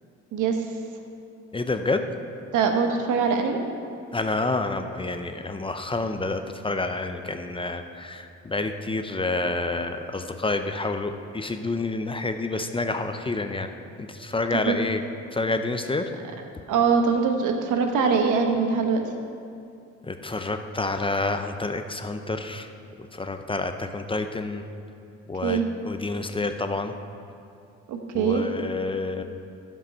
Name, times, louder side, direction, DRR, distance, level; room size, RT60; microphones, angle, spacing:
voice 1, 1.5-2.0 4.1-13.7 14.0-15.0 15.3-16.1 20.0-22.7 23.0-24.7 25.3-27.0 28.1-29.2, left 3 dB, 15° left, 7 dB, 0.6 m, -28 dB
voice 2, 2.5-3.6 14.7-14.8 16.7-19.0 25.4-25.7 27.9-28.5, right 5 dB, 85° right, 4 dB, 1.1 m, -22 dB
14.5 x 5.4 x 5.5 m, 2.5 s
cardioid pair, 90°, 30 cm